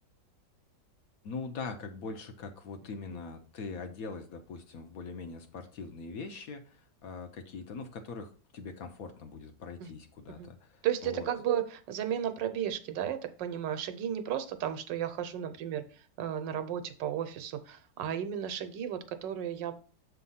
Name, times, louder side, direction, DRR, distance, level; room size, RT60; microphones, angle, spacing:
voice 1, 1.2-11.3, left 4 dB, 60° left, 6 dB, 1.1 m, -42 dB
voice 2, 10.8-19.7, right 10 dB, 90° right, 9 dB, 1.4 m, -34 dB
7.2 x 3.4 x 5.5 m, 0.40 s
omnidirectional pair, 1.9 m